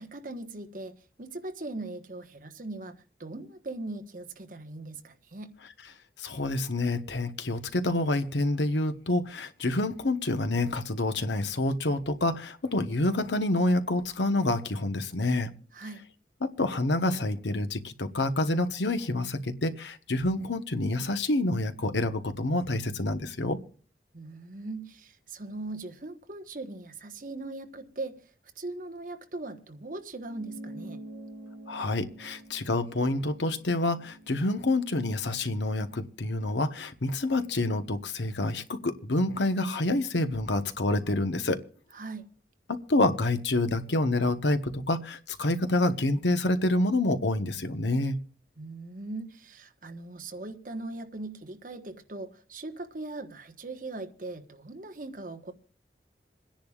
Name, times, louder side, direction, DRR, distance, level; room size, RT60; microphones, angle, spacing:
voice 1, 0.0-5.5 15.7-16.0 24.1-28.3 28.6-31.0 41.9-42.2 48.6-55.5, right 2 dB, 50° right, 1.3 m, -40 dB
voice 2, 6.2-15.5 16.4-23.6 31.7-41.6 42.9-48.2, left 2 dB, 85° left, 1.1 m, -27 dB
sound 1, 30.2-35.0, right 1 dB, 65° right, 2.5 m, -46 dB
28.0 x 10.5 x 2.4 m
head